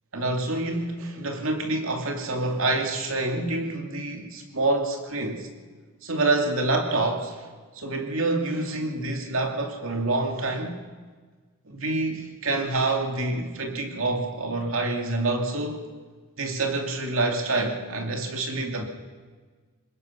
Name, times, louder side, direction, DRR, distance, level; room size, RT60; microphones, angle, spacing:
voice 1, 0.1-5.5 6.0-7.5 7.7-10.8 11.7-15.9 16.4-18.8, right 2 dB, 70° right, 3 dB, 2.5 m, -27 dB
26.0 x 21.5 x 5.7 m, 1.4 s
head